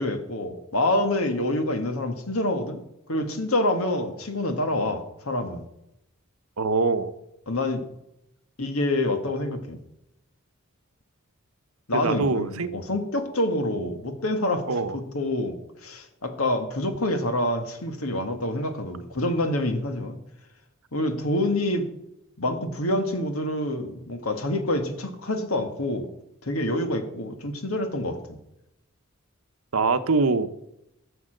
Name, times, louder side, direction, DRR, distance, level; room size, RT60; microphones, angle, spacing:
voice 1, 0.0-2.8 3.1-5.6 7.5-7.8 8.6-9.8 11.9-14.6 14.9-20.2 20.9-21.9 22.4-26.1 26.4-28.4, left 1 dB, 85° left, 7 dB, 1.7 m, -27 dB
voice 2, 6.6-7.1 11.9-12.7 14.7-15.0 29.7-30.5, right 4 dB, 85° right, 11 dB, 0.9 m, -23 dB
13.0 x 7.0 x 6.5 m, 0.85 s
head